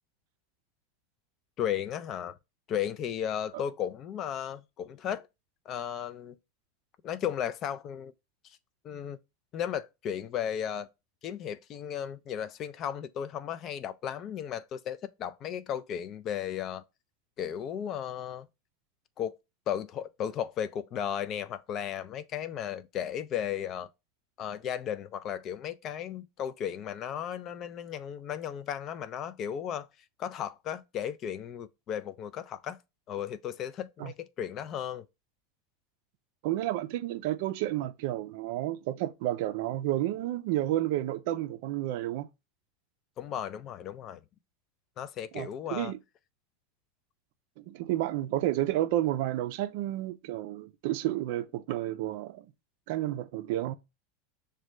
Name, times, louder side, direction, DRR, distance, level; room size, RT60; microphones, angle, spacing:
voice 1, 1.6-2.4 2.7-5.3 5.7-6.4 7.0-8.1 8.8-9.2 9.5-10.9 11.2-16.8 17.4-18.5 19.2-19.4 19.7-23.9 24.4-29.9 30.2-32.8 33.1-35.1 43.2-44.2 45.0-45.9, left 9 dB, 35° left, 0.3 m, -35 dB
voice 2, 36.4-42.3 45.3-46.0 47.6-52.5 52.9-53.7, right 14 dB, 65° right, 0.4 m, -31 dB
6.1 x 2.2 x 3.2 m
supercardioid pair, 140°, 0 cm